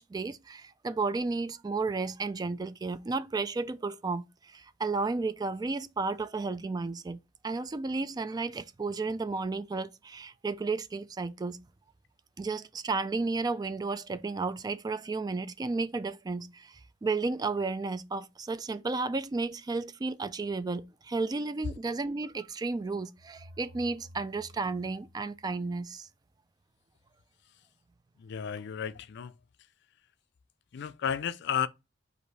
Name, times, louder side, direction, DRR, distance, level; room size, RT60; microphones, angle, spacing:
voice 1, 0.0-4.2 4.5-7.2 7.4-11.6 12.4-16.7 17.0-26.1, right 3 dB, 20° right, 0.3 m, -33 dB
sound 1, 23.2-26.1, equal, 85° right, 0.7 m, -54 dB
voice 2, 28.2-29.3 30.7-31.7, left 8 dB, 60° left, 0.4 m, -33 dB
4.8 x 2.6 x 4.0 m
head